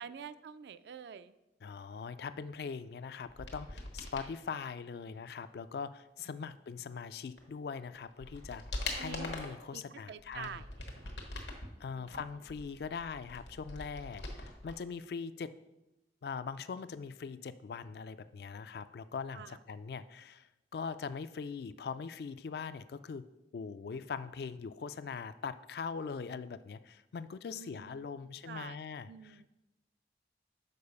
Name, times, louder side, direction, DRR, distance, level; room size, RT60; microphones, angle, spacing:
voice 1, 0.0-1.3 8.9-9.3 9.7-11.1 11.9-12.2 19.3-19.6 27.5-28.1 28.5-28.8 29.1-29.5, right 7 dB, 70° right, 14 dB, 0.3 m, -47 dB
voice 2, 1.6-10.6 11.4-15.5 16.2-23.3 23.5-29.5, left 5 dB, 60° left, 13 dB, 0.3 m, -42 dB
sound 1, 3.3-4.3 7.4-7.5 8.0-9.6 10.2-11.7 12.1-14.8 15.0-15.1, left 2 dB, 85° left, 1.3 m, -43 dB
6.7 x 4.7 x 5.4 m, 0.97 s
head